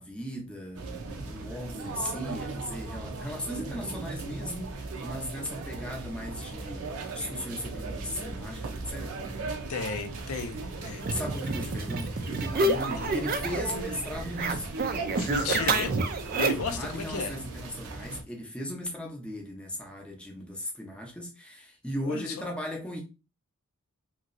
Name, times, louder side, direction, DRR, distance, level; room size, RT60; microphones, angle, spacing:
voice 1, 0.0-9.3 10.9-14.8 16.3-23.0, left 1 dB, 5° left, 0.6 m, -37 dB
sound 1, 0.7-18.2, right 3 dB, 90° right, 0.6 m, -37 dB
voice 2, 9.7-11.1 13.0-13.1 15.2-16.0 16.4-17.3 22.0-22.4, left 4 dB, 85° left, 0.5 m, -34 dB
sound 2, 11.0-13.7 14.0-16.8, right 2 dB, 45° right, 0.4 m, -29 dB
2.9 x 2.8 x 2.6 m
head